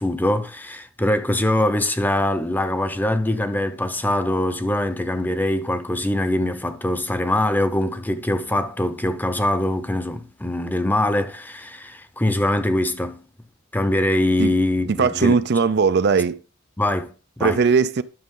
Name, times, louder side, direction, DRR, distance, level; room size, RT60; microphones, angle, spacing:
voice 1, 0.0-13.2 13.7-15.4 16.8-17.6, left 1 dB, 10° left, 0.7 m, -23 dB
voice 2, 15.0-16.4 17.4-18.0, right 5 dB, 55° right, 0.5 m, -18 dB
11.0 x 6.5 x 3.8 m
head